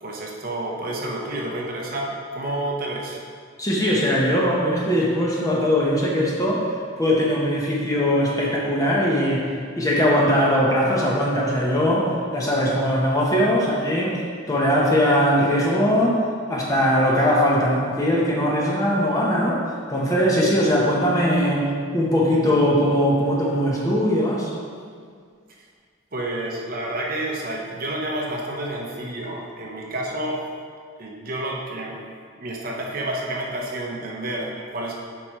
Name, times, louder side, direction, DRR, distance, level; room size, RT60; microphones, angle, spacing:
voice 1, 0.0-3.2 26.1-30.4 31.0-32.0 32.4-34.9, right 1 dB, 45° right, -2 dB, 0.8 m, -29 dB
voice 2, 3.6-6.6 7.0-9.5 9.8-14.2 14.5-16.2 16.5-19.6 19.9-21.7 21.9-24.5, equal, 15° left, -4 dB, 0.8 m, -20 dB
7.6 x 5.0 x 3.0 m, 2.1 s
head